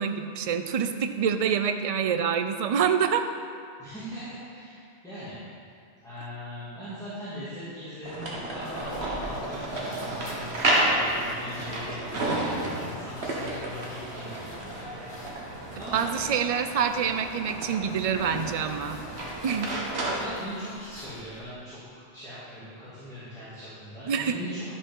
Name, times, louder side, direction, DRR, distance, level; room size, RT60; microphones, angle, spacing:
voice 1, 0.0-3.2 15.9-19.0 19.4-19.7 24.1-24.4, right 7 dB, 50° right, 8 dB, 0.5 m, -26 dB
voice 2, 3.8-5.4 6.0-14.5 15.8-16.0 20.1-24.7, equal, 5° left, -14 dB, 2.4 m, -40 dB
sound 1, 8.0-21.5, left 1 dB, 25° left, 0.8 m, -47 dB
sound 2, 8.1-20.2, right 1 dB, 85° right, 1.6 m, -31 dB
11.0 x 5.8 x 5.4 m, 2.3 s
omnidirectional pair, 1.1 m